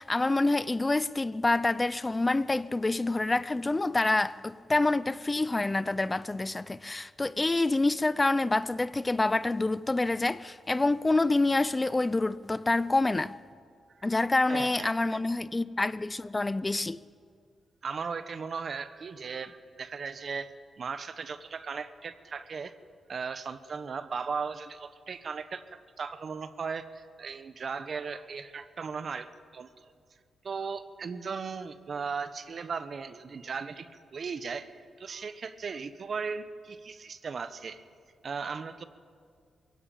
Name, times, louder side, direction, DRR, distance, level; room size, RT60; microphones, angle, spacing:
voice 1, 0.0-13.3 14.0-17.0, left 2 dB, 25° left, 0.5 m, -27 dB
voice 2, 14.5-15.2 17.8-20.5 20.8-22.7 23.1-29.9 30.4-34.7 35.0-37.8 38.2-38.8, right 5 dB, 55° right, 1.1 m, -37 dB
22.0 x 16.0 x 8.9 m
cardioid pair, 65°, 0 cm